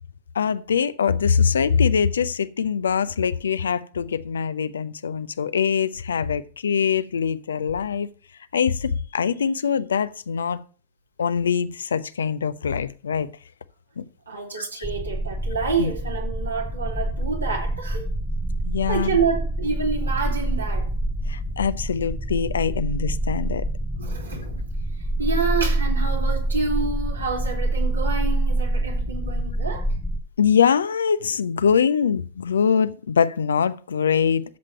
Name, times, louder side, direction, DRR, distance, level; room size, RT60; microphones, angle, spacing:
voice 1, 0.3-8.1 8.5-10.6 11.2-13.3 14.0-14.1 14.6-14.8 15.8-15.9 18.7-19.2 21.3-23.7 30.4-34.4, left 6 dB, 70° left, 0.6 m, -23 dB
voice 2, 14.3-18.0 18.9-20.9 24.0-24.7 25.2-29.9, right 4 dB, 80° right, 2.9 m, -28 dB
sound 1, 14.8-30.2, right 1 dB, 5° left, 0.8 m, -26 dB
13.0 x 7.5 x 4.3 m
figure-of-eight pair, 90°, 0 cm